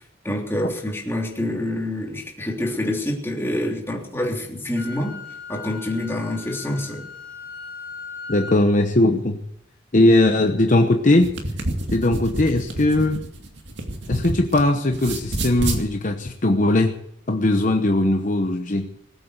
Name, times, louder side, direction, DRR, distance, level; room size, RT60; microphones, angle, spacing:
voice 1, 0.2-5.2 5.5-7.0, left 1 dB, 15° left, 3.4 m, -26 dB
Wind instrument woodwind instrument, 4.7-8.6, left 5 dB, 80° left, 4.4 m, -38 dB
voice 2, 8.3-9.4 9.9-11.3 11.9-13.2 14.1-17.0 17.3-18.9, left 1 dB, 45° left, 1.0 m, -19 dB
sound 1, 11.2-14.6 14.9-15.8, right 1 dB, 65° right, 2.4 m, -28 dB
20.0 x 8.5 x 8.1 m
head